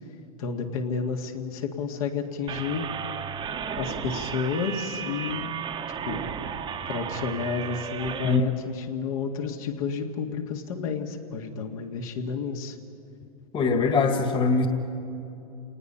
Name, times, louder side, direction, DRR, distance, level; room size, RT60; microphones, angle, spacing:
voice 1, 0.4-2.9 3.8-5.5 6.1-6.2 6.9-12.8, left 5 dB, 65° left, 2 dB, 2.0 m, -31 dB
sound 1, 2.5-8.4, right 7 dB, 25° right, 1.1 m, -34 dB
voice 2, 13.5-14.7, left 4 dB, 25° left, 6 dB, 1.8 m, -22 dB
28.5 x 19.0 x 5.7 m, 2.8 s
hypercardioid pair, 110°, 20 cm